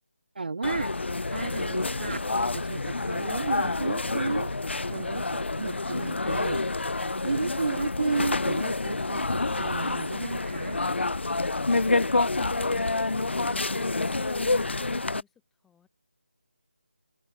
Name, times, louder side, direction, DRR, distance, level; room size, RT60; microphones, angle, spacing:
voice 1, 0.4-0.9 1.3-2.2 2.5-4.5 4.9-5.3 5.6-6.6 7.2-9.2 9.5-10.8, right 4 dB, 55° right, 0.4 m, -32 dB
sound 1, 0.6-15.2, left 3 dB, 80° left, 0.9 m, -28 dB
voice 2, 1.3-1.4, left 8 dB, 5° left, 2.7 m, -63 dB
figure-of-eight pair, 175°, 6 cm